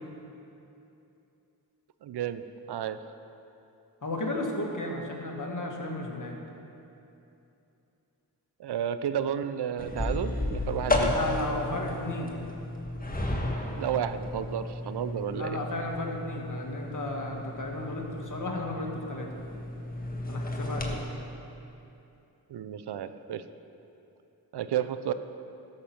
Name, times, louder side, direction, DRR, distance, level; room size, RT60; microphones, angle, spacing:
voice 1, 2.0-2.4 2.7-3.0 8.6-11.1 13.8-15.6 22.5-23.4 24.5-25.1, right 9 dB, 90° right, 12 dB, 0.5 m, -32 dB
voice 2, 4.0-6.4 11.1-12.4 15.3-19.3 20.3-21.0, left 2 dB, 50° left, 0 dB, 1.8 m, -34 dB
sound 1, 9.8-21.0, left 2 dB, 20° left, 1.5 m, -33 dB
12.5 x 6.7 x 5.9 m, 2.8 s
cardioid pair, 45°, 39 cm